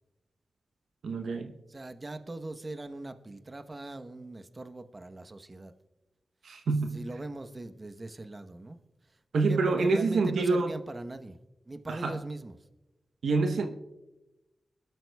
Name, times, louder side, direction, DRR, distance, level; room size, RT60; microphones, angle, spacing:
voice 1, 1.0-1.5 6.4-7.0 9.3-10.7 11.9-12.2 13.2-13.7, right 3 dB, 90° right, 6 dB, 0.8 m, -27 dB
voice 2, 1.7-5.7 6.9-8.8 9.1-11.4 11.6-12.5, right 2 dB, 40° right, 9 dB, 1.0 m, -41 dB
21.0 x 12.5 x 2.3 m, 1.0 s
cardioid pair, 45°, 0 cm